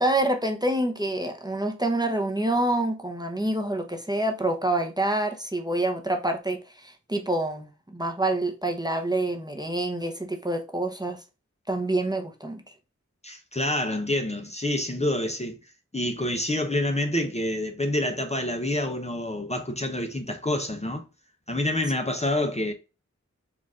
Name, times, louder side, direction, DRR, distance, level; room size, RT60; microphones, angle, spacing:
voice 1, 0.0-11.2 11.7-12.6, right 1 dB, 15° right, 0.7 m, -27 dB
voice 2, 13.2-15.5 15.9-21.0 21.5-22.7, left 1 dB, 25° left, 0.7 m, -27 dB
4.4 x 2.5 x 3.6 m
wide cardioid pair, 50°, 29 cm